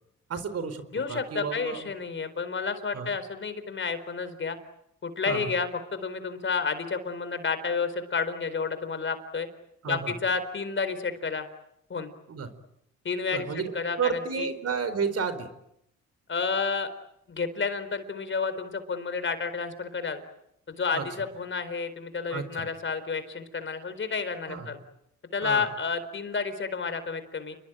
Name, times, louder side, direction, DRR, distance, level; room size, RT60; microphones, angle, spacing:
voice 1, 0.3-0.8 1.1-1.9 2.9-3.1 5.3-5.5 9.8-10.1 12.3-12.5 13.3-13.7 14.0-15.5 20.9-21.0 22.3-22.7 24.5-24.7 25.4-25.7, right 6 dB, 55° right, 12 dB, 4.4 m, -31 dB
voice 2, 0.9-4.6 5.0-9.5 9.8-11.5 11.9-12.1 13.0-13.5 13.7-14.5 16.3-16.9 17.3-20.2 20.7-24.8 25.3-27.6, left 5 dB, 40° left, 11 dB, 4.3 m, -30 dB
29.5 x 22.0 x 9.2 m, 0.79 s
cardioid pair, 90°, 30 cm